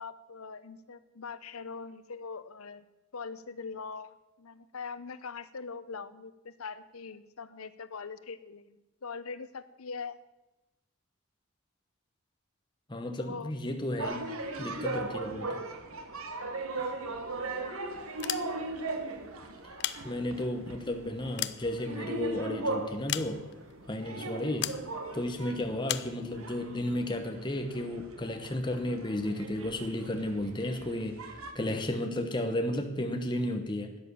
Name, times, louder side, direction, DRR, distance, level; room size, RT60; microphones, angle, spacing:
voice 1, 0.0-2.9 3.1-10.2 13.2-13.5 17.3-17.8 25.4-25.5, left 5 dB, 85° left, 14 dB, 0.8 m, -42 dB
voice 2, 12.9-14.3 14.6-15.6 20.0-23.4 23.9-24.7 25.1-31.3 31.5-34.0, left 1 dB, 20° left, 5 dB, 1.0 m, -33 dB
sound 1, 14.0-31.5, right 2 dB, 85° right, 1.3 m, -39 dB
sound 2, 18.1-18.9 19.6-20.6 21.1-22.3 23.1-23.7 24.6-24.9 25.9-26.2, left 13 dB, 55° left, 0.5 m, -36 dB
13.0 x 9.2 x 6.9 m, 0.99 s
head